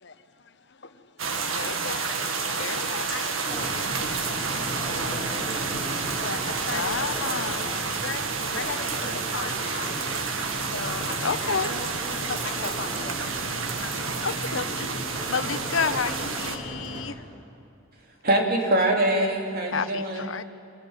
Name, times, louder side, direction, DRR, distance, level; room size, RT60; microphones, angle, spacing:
voice 1, 0.8-1.1 1.5-2.8 3.1-5.0 6.2-7.4 7.8-8.2 8.5-11.9 12.2-14.3 15.4-15.6, left 4 dB, 60° left, 1.2 m, -39 dB
sound 1, 1.2-16.6, right 5 dB, 90° right, 1.9 m, -30 dB
voice 2, 1.5-2.0 2.6-3.1 6.7-7.8 11.2-11.7 14.2-14.9 15.3-17.1 19.7-20.4, left 5 dB, 75° left, 0.8 m, -30 dB
sound 2, 3.5-17.0, equal, 25° right, 7.4 m, -36 dB
voice 3, 18.2-20.3, right 1 dB, 50° right, 3.3 m, -23 dB
25.0 x 19.5 x 9.1 m
head